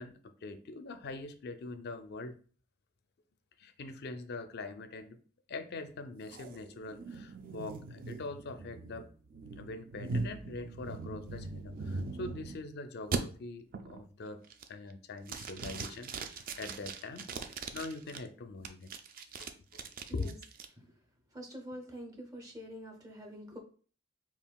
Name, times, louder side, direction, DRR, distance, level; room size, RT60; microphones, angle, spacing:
voice 1, 0.0-2.3 3.6-5.2 5.5-9.1 9.6-14.4 14.7-17.3 17.7-18.9 19.4-19.8 20.1-20.4, left 3 dB, 50° left, 9 dB, 0.4 m, -43 dB
sound 1, 6.3-12.6 13.1-13.2 13.7-14.1 14.5-14.9 15.3-18.2 18.6-20.7, right 3 dB, 45° right, 0.3 m, -40 dB
voice 2, 21.3-23.6, equal, 15° right, 1 dB, 0.7 m, -45 dB
5.4 x 2.4 x 2.3 m, 0.41 s
head